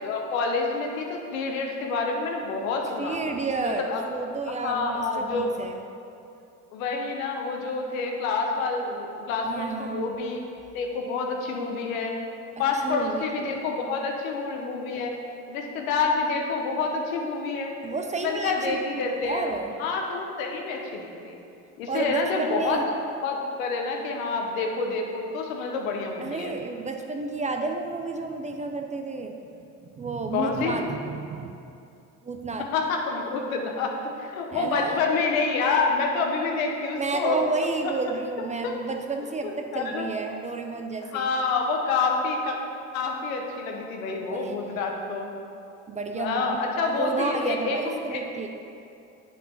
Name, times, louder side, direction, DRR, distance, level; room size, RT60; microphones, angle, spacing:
voice 1, 0.0-3.2 3.6-4.0 4.6-5.5 6.7-10.4 10.7-12.2 12.6-15.1 15.5-17.7 18.2-19.5 19.8-21.4 21.8-22.9 23.2-26.5 30.3-30.8 32.7-37.4 38.6-38.7 39.4-40.1 41.1-42.5 42.9-45.3 46.1-48.2, left 4 dB, 85° left, 2 dB, 0.9 m, -28 dB
voice 2, 3.0-5.8 9.4-10.1 12.6-13.2 17.8-19.8 21.9-22.8 26.2-31.5 32.2-32.7 34.5-35.0 36.9-41.3 44.3-44.8 45.9-48.5, right 3 dB, 20° right, 5 dB, 0.3 m, -31 dB
7.4 x 3.3 x 5.3 m, 2.6 s
hypercardioid pair, 80°, 40 cm